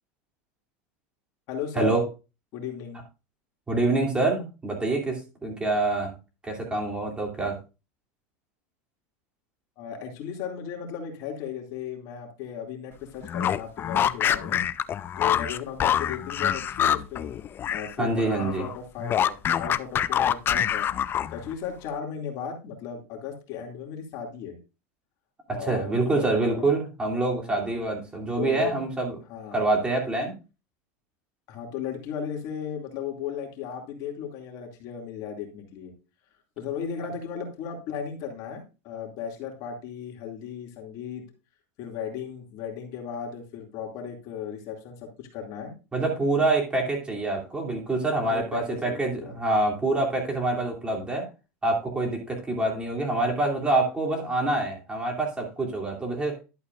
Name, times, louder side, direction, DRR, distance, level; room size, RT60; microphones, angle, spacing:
voice 1, 1.5-2.0 2.5-3.0 9.8-14.6 15.2-17.3 17.7-20.9 21.3-24.6 25.5-26.8 27.5-27.7 28.4-28.8 29.3-29.6 31.5-35.9 36.6-41.2 41.8-45.7 48.2-49.4, left 7 dB, 55° left, 2 dB, 2.5 m, -36 dB
voice 2, 3.7-6.1 6.4-7.6 18.0-18.7 25.6-29.2 29.5-30.3 45.9-51.3 51.6-56.4, right 2 dB, 15° right, 0 dB, 2.8 m, -26 dB
sound 1, 13.2-17.9 18.2-21.5, left 9 dB, 30° left, 0.5 m, -26 dB
11.5 x 8.1 x 2.5 m, 0.30 s
supercardioid pair, 125°, 7 cm